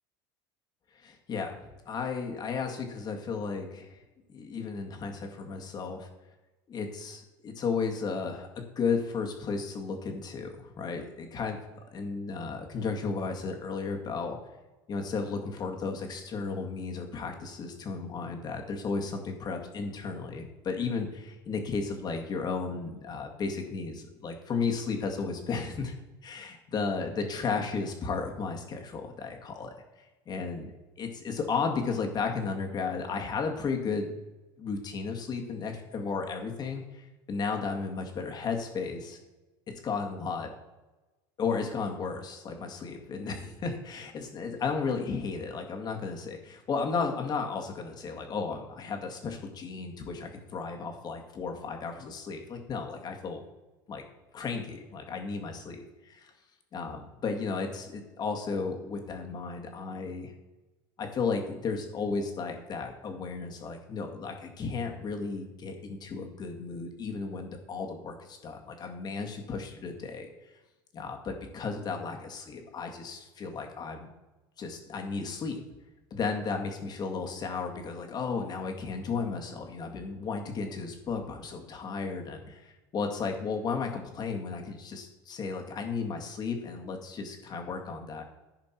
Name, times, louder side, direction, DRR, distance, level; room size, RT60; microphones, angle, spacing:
voice 1, 1.0-1.6 1.9-4.0 4.3-6.1 6.7-11.6 11.9-14.4 14.9-25.9 26.2-29.7 30.3-30.7 31.0-34.1 34.6-39.2 39.8-40.5 41.4-53.4 53.9-54.0 54.3-56.3 56.7-60.3 61.0-70.3 70.9-74.1 74.6-75.6 76.1-88.2, left 4 dB, 35° left, 3 dB, 2.0 m, -34 dB
14.5 x 5.1 x 4.5 m, 1.1 s
supercardioid pair, 115°, 12 cm